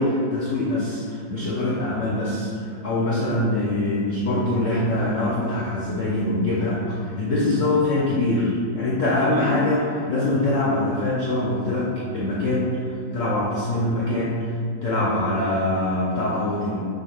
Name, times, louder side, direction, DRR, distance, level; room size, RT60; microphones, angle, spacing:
voice 1, 0.0-2.5 2.8-12.7 13.1-14.4 14.8-16.8, left 1 dB, 80° left, -5 dB, 0.7 m, -23 dB
6.2 x 2.3 x 3.4 m, 2.2 s
omnidirectional pair, 2.1 m